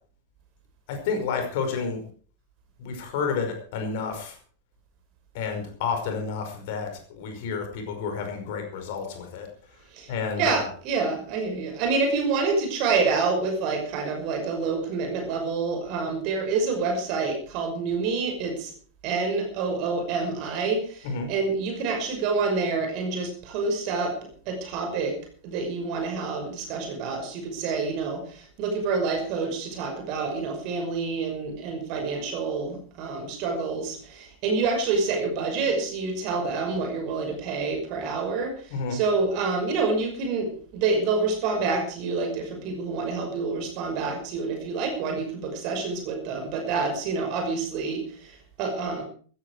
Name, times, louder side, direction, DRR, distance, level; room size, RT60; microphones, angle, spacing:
voice 1, 0.9-2.0 2.8-4.4 5.3-9.5 10.1-10.6 21.0-21.3 38.7-39.0, left 5 dB, 50° left, 5 dB, 5.2 m, -30 dB
voice 2, 9.9-18.7 19.0-24.2 24.5-25.2 25.4-49.0, right 4 dB, 45° right, 4 dB, 5.8 m, -27 dB
15.0 x 15.0 x 4.8 m, 0.44 s
figure-of-eight pair, 90°, 0 cm